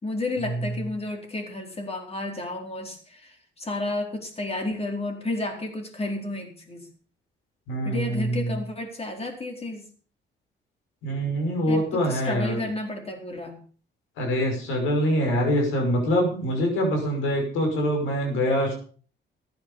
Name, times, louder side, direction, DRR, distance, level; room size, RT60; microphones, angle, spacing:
voice 1, 0.0-6.9 7.8-9.9 11.7-13.6, left 2 dB, 30° left, 3 dB, 4.4 m, -32 dB
voice 2, 7.7-8.5 11.0-12.6 14.2-18.8, equal, 90° left, 2 dB, 5.8 m, -24 dB
14.0 x 10.5 x 5.5 m, 0.41 s
cardioid pair, 90°, 20 cm